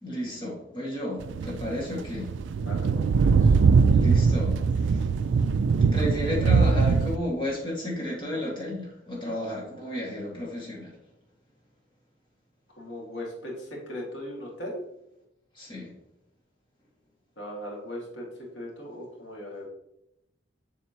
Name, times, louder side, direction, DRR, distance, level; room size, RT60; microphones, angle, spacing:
voice 1, 0.0-2.3 3.9-4.6 4.9-5.0 5.9-10.9 15.5-15.9, left 1 dB, 25° left, -4 dB, 1.9 m, -32 dB
sound 1, 1.2-7.2, right 5 dB, 75° right, 0.3 m, -22 dB
voice 2, 2.7-3.6 12.8-14.8 17.4-18.3 18.5-19.7, left 1 dB, 80° left, -2 dB, 2.1 m, -38 dB
7.5 x 6.1 x 2.9 m, 0.83 s
head